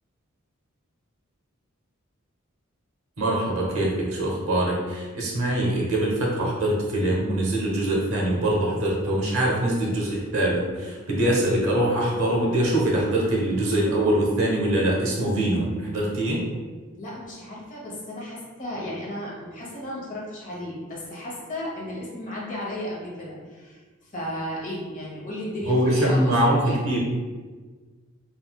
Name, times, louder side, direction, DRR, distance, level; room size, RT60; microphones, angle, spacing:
voice 1, 3.2-16.4 25.7-26.6 26.8-27.0, right 1 dB, 85° right, -3 dB, 0.9 m, -23 dB
voice 2, 17.0-26.8, left 1 dB, 40° left, -5 dB, 1.0 m, -34 dB
3.7 x 2.5 x 2.3 m, 1.4 s
head